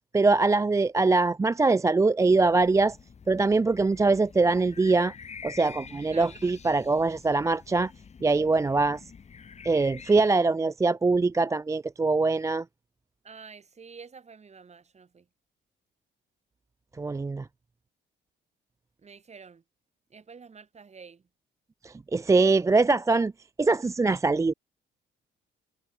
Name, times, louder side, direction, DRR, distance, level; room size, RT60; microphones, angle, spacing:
voice 1, 0.1-3.0 3.3-5.1 5.4-7.9 8.2-9.0 9.6-12.6 17.0-17.5 21.8-23.3 23.6-24.5, right 3 dB, 15° right, 0.4 m, -23 dB
sound 1, 2.4-10.3, left 6 dB, 35° left, 1.0 m, -47 dB
voice 2, 6.1-6.4 13.2-15.3 19.0-19.6 20.1-21.3, right 5 dB, 35° right, 2.1 m, -48 dB
cardioid pair, 90°, 20 cm